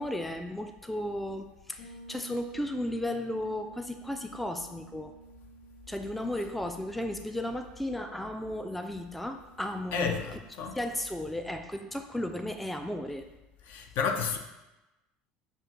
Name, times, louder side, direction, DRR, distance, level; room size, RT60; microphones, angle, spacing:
voice 1, 0.0-5.1 5.9-10.2 10.7-13.3, left 1 dB, 5° left, 7 dB, 0.3 m, -34 dB
Bass guitar, 1.8-11.4, right 3 dB, 85° left, 1.2 m, -53 dB
voice 2, 9.9-10.8 13.7-14.4, left 5 dB, 60° left, 6 dB, 0.6 m, -31 dB
6.8 x 2.6 x 2.9 m, 1.0 s
hypercardioid pair, 85°, 4 cm